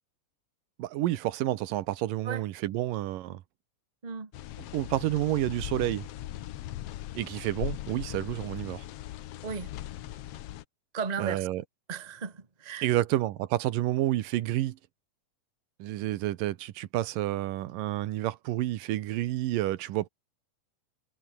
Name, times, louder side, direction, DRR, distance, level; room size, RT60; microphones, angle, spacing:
voice 1, 0.8-3.4 4.7-6.1 7.1-8.9 11.2-11.6 12.8-14.8 15.8-20.1, right 15 dB, 85° right, 2.6 m, -29 dB
sound 1, 4.3-10.6, left 14 dB, 85° left, 1.3 m, -39 dB
voice 2, 9.4-9.7 10.9-11.5 11.9-12.9, right 5 dB, 35° right, 0.6 m, -35 dB
omnidirectional pair, 3.9 m